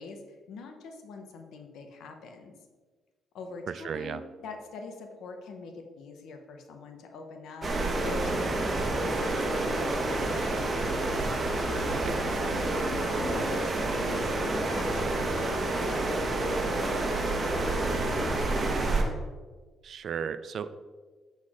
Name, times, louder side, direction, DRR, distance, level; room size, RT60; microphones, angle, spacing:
voice 1, 0.0-2.5 3.3-7.7 8.0-10.9 12.4-18.6, left 4 dB, 75° left, 4 dB, 0.9 m, -43 dB
voice 2, 3.7-4.2 11.9-12.2 19.8-20.8, right 7 dB, 60° right, 13 dB, 0.4 m, -35 dB
sound 1, 7.6-19.0, right 2 dB, 35° right, 1.2 m, -28 dB
8.3 x 4.0 x 4.9 m, 1.4 s
cardioid pair, 90°, 0 cm